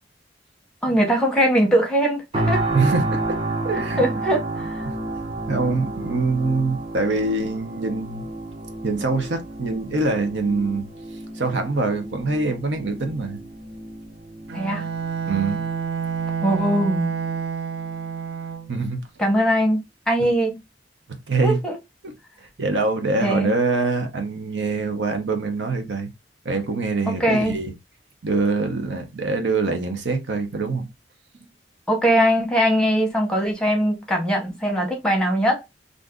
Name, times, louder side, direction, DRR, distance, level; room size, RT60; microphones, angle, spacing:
voice 1, 0.8-2.7 3.7-4.9 14.5-14.8 16.4-17.1 19.2-19.8 20.1-20.6 21.4-21.8 23.2-23.5 27.1-27.6 31.9-35.6, equal, 5° left, 0.9 m, -21 dB
sound 1, 2.3-17.3 17.8-18.0, right 2 dB, 30° right, 0.7 m, -31 dB
voice 2, 2.7-3.4 3.6-4.0 4.8-4.9 5.5-8.2 8.8-10.9 11.3-13.4 15.2-15.6 18.7-19.0 21.3-21.6 22.0-22.1 22.6-26.1 26.4-27.7 28.2-30.9, right 3 dB, 80° right, 0.8 m, -24 dB
Bowed string instrument, 14.5-18.8, right 7 dB, 65° right, 0.4 m, -28 dB
2.6 x 2.5 x 3.5 m
head